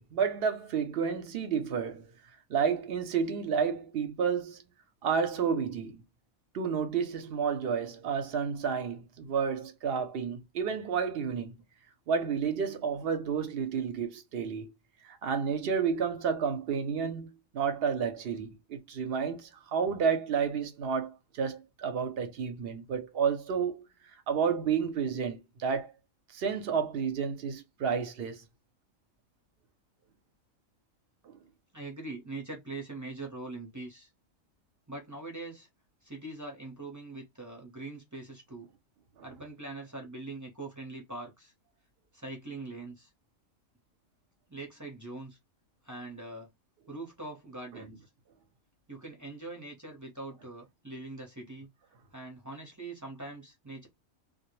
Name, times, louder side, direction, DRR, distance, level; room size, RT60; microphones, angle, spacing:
voice 1, 0.0-2.1 2.5-4.6 5.0-6.0 6.5-11.5 12.1-14.7 15.0-23.8 24.3-25.9 26.3-28.4 31.3-31.4, right 6 dB, 60° right, 0.7 m, -31 dB
voice 2, 31.7-34.1 34.9-35.7 36.0-38.7 39.2-41.5 42.1-43.1 44.5-45.4 45.8-46.5 46.9-48.0 48.9-51.7 52.1-53.9, right 2 dB, 20° right, 0.5 m, -42 dB
2.1 x 2.0 x 2.9 m
omnidirectional pair, 1.3 m